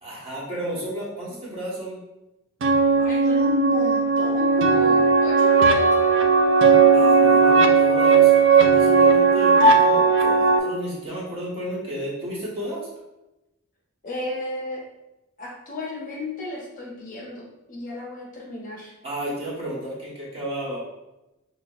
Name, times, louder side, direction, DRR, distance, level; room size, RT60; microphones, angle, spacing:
voice 1, 0.0-2.0 6.9-12.8 19.0-20.8, right 1 dB, 30° right, -6 dB, 1.4 m, -32 dB
sound 1, 2.6-10.6, right 4 dB, 60° right, 0.4 m, -17 dB
voice 2, 2.9-6.2 9.0-9.1 14.0-14.8 15.4-18.9, left 1 dB, 40° left, -3 dB, 1.0 m, -33 dB
6.2 x 2.4 x 2.5 m, 0.96 s
head